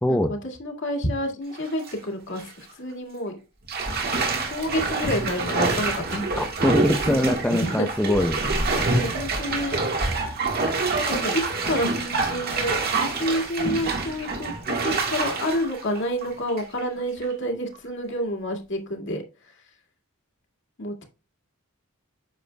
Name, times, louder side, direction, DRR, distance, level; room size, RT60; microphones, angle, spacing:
voice 1, 0.1-3.4 4.5-6.3 7.8-8.2 8.9-9.8 11.1-19.6 20.8-21.0, equal, 55° left, 2 dB, 2.1 m, -29 dB
Bathtub (filling or washing), 1.5-1.9 2.4-2.5 3.7-16.8 17.2-17.3, right 3 dB, 45° right, 1.6 m, -26 dB
voice 2, 6.4-8.7, left 1 dB, 5° left, 5 dB, 0.5 m, -23 dB
9.1 x 6.9 x 2.3 m, 0.30 s
head